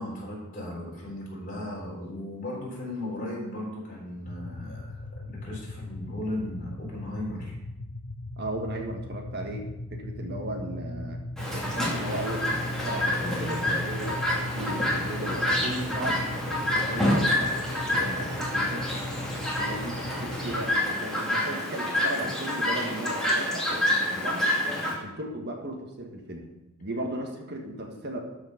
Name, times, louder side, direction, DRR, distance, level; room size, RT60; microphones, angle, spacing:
voice 1, 0.0-7.6, left 1 dB, 40° left, -4 dB, 4.2 m, -36 dB
sound 1, 4.3-20.7, left 1 dB, 70° left, 0.8 m, -38 dB
voice 2, 8.4-11.2 11.5-16.3 16.6-18.9 19.5-24.5 24.9-26.5 26.8-28.2, right 1 dB, 50° right, 2 dB, 1.5 m, -36 dB
Chirp tweet, 11.4-24.9, left 1 dB, 5° left, 2.5 m, -28 dB
13.0 x 5.0 x 5.7 m, 0.94 s
head